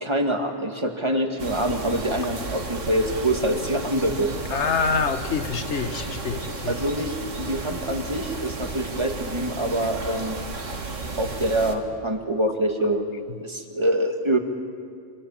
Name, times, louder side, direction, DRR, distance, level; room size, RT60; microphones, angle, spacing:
voice 1, 0.0-4.3 6.7-10.4 11.2-13.1 13.4-14.4, right 1 dB, 25° right, 4 dB, 2.1 m, -25 dB
sound 1, 1.4-11.7, right 3 dB, 85° right, 2.2 m, -33 dB
voice 2, 4.5-6.7, left 5 dB, 70° left, 10 dB, 1.4 m, -26 dB
26.5 x 25.5 x 7.4 m, 2.3 s
omnidirectional pair, 1.2 m